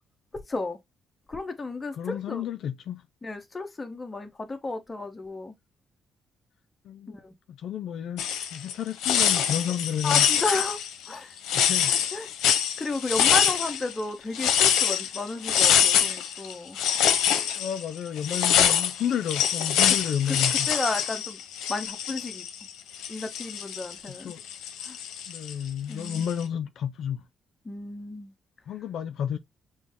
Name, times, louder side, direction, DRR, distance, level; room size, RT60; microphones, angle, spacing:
voice 1, 0.3-0.8 1.3-2.4 3.2-5.5 7.1-7.3 10.0-11.3 11.9-12.3 12.8-16.8 20.3-20.4 20.7-21.4 21.7-22.5 23.1-24.3 24.8-25.0 25.9-26.3 27.6-28.3, left 3 dB, 25° left, 1.1 m, -33 dB
voice 2, 1.9-3.0 6.8-7.2 7.5-10.3 11.5-12.1 17.5-20.7 24.2-24.4 25.3-27.2 28.7-29.4, left 9 dB, 70° left, 0.4 m, -31 dB
sound 1, 8.2-8.7 9.0-13.9 14.3-22.7 22.9-25.5 26.0-26.4, left 9 dB, 90° left, 0.7 m, -24 dB
6.1 x 2.2 x 3.5 m
cardioid pair, 90°, 0 cm